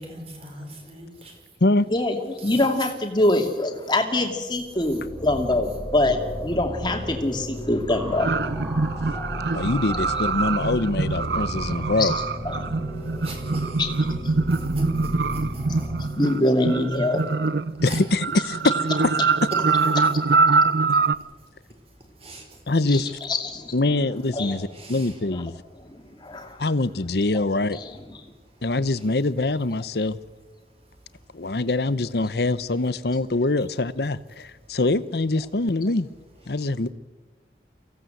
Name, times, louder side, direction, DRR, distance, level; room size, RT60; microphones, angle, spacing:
voice 1, 0.0-1.6 2.4-2.7 4.9-5.0 8.8-9.6 12.9-13.8 14.3-16.2 17.8-18.0 20.0-20.1 20.5-22.7 24.7-25.2 25.9-26.5 28.4-29.1 30.7-31.5 34.6-34.8 36.5-36.6, right 1 dB, 35° right, 3 dB, 4.6 m, -44 dB
voice 2, 1.9-8.3 12.0-12.1 12.4-12.6 13.8-13.9 16.1-17.2 22.9-23.7 24.3-24.6 25.3-25.4 25.8-26.6 27.7-27.8, left 1 dB, 25° left, 3 dB, 2.5 m, -24 dB
sound 1, 4.6-16.1, equal, 5° right, 5.8 m, -34 dB
sound 2, 8.2-21.2, right 4 dB, 65° right, 0.7 m, -24 dB
voice 3, 9.5-12.1 17.8-18.7 19.0-19.1 22.7-23.1 23.7-25.5 26.6-27.8 28.6-30.2 31.3-36.1 36.5-36.9, left 2 dB, 60° left, 16 dB, 0.8 m, -24 dB
24.0 x 16.5 x 7.9 m, 1.2 s
head